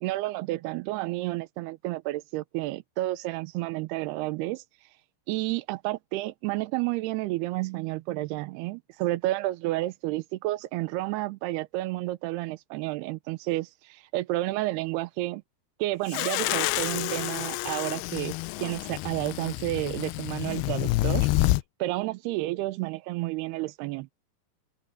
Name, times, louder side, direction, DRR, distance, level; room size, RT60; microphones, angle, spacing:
voice 1, 0.0-4.6 5.3-15.4 15.8-18.3 18.6-21.3 21.8-24.1, right 18 dB, 90° right, 2.7 m, -31 dB
sound 1, 16.1-21.6, left 19 dB, 85° left, 2.4 m, -28 dB
open air
omnidirectional pair, 4.7 m